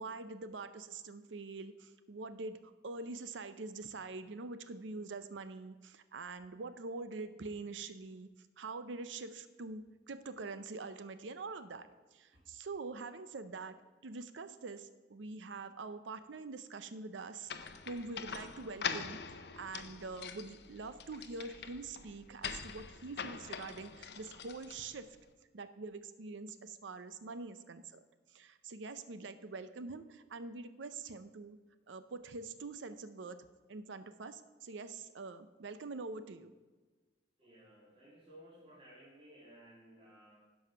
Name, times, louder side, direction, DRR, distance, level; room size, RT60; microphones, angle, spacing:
voice 1, 0.0-13.8 14.0-17.5 17.9-25.2 25.5-28.0 28.3-31.6 31.9-33.4 33.7-36.5, right 3 dB, 85° right, 11 dB, 0.6 m, -45 dB
sound 1, 17.5-25.1, left 6 dB, 60° left, 0.6 m, -44 dB
voice 2, 37.4-40.4, equal, 30° right, -6 dB, 2.2 m, -57 dB
10.5 x 5.5 x 5.6 m, 1.3 s
head